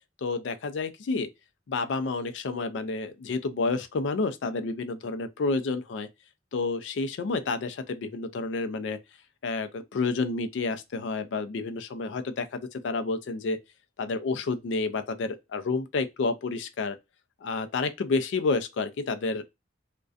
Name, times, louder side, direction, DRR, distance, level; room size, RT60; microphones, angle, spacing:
voice 1, 0.2-1.3 1.7-6.1 6.5-9.0 9.4-13.6 14.0-17.0 17.4-19.4, left 3 dB, 70° left, 0.4 m, -30 dB
2.4 x 2.2 x 2.3 m
head